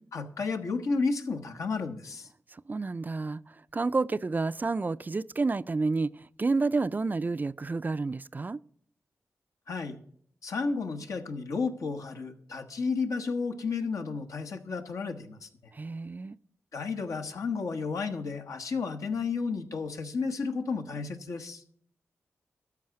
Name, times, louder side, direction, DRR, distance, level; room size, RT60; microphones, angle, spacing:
voice 1, 0.1-2.3 9.7-10.0 10.4-15.5 16.7-21.6, left 4 dB, 75° left, 1.1 m, -32 dB
voice 2, 2.5-8.6 15.7-16.4, right 3 dB, 35° right, 0.3 m, -30 dB
13.5 x 4.8 x 7.6 m
cardioid pair, 55°, 6 cm